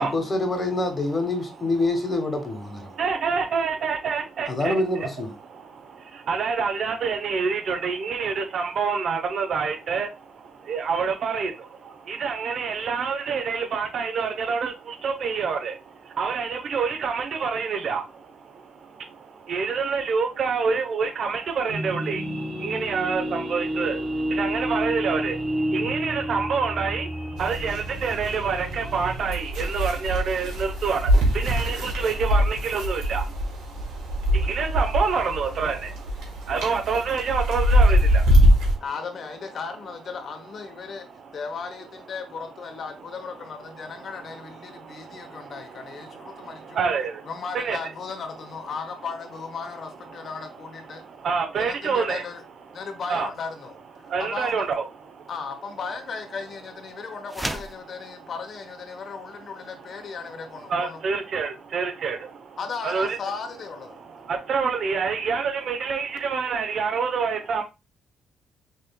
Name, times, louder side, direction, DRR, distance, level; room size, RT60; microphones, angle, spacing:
voice 1, 0.0-2.9 4.5-5.3, left 2 dB, 30° left, 1.1 m, -26 dB
voice 2, 2.8-4.8 5.4-38.8 40.8-41.4 43.7-47.8 50.1-50.3 50.9-52.2 53.1-53.3 54.0-55.3 56.9-57.0 57.9-58.3 58.9-59.7 60.1-60.2 60.7-63.2 63.9-67.6, right 5 dB, 60° right, 0.8 m, -28 dB
sound 1, 21.7-29.2, equal, 30° right, 2.2 m, -30 dB
sound 2, 27.4-38.7, equal, 85° right, 1.4 m, -23 dB
voice 3, 38.8-41.1 41.3-46.8 47.2-51.0 51.5-52.4 52.7-54.6 55.3-61.0 62.6-64.0, left 5 dB, 55° left, 0.8 m, -36 dB
sound 3, 57.3-57.8, right 1 dB, 10° right, 0.5 m, -31 dB
5.4 x 3.2 x 2.2 m
cardioid pair, 90°, 0 cm